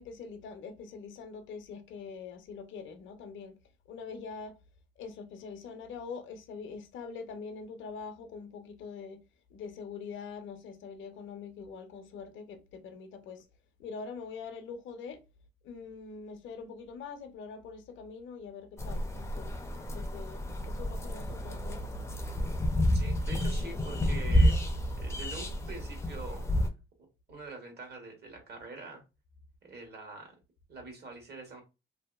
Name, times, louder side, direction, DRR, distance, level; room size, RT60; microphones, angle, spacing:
voice 1, 0.0-3.6 3.9-4.5 5.0-9.2 9.5-13.4 13.8-15.2 15.6-21.9, left 5 dB, 75° left, 0.6 m, -44 dB
sound 1, 18.8-26.7, equal, 15° left, 0.4 m, -30 dB
voice 2, 22.9-24.7 25.0-26.5 27.3-29.0 29.6-30.3 30.7-31.6, right 3 dB, 55° right, 1.2 m, -45 dB
2.7 x 2.5 x 2.2 m
cardioid pair, 90°, 20 cm